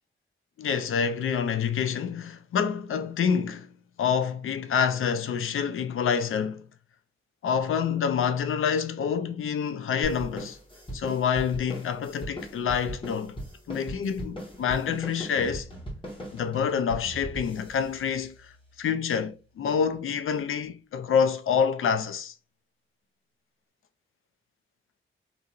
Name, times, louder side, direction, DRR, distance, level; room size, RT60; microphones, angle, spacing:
voice 1, 0.6-6.7 7.4-10.6 10.9-13.4 13.7-15.7 16.3-18.5 18.8-22.3, left 7 dB, 75° left, 0.5 m, -27 dB
sound 1, 10.0-18.9, right 1 dB, 25° left, 1.4 m, -40 dB
2.9 x 2.6 x 2.4 m
wide cardioid pair, 95°, 21 cm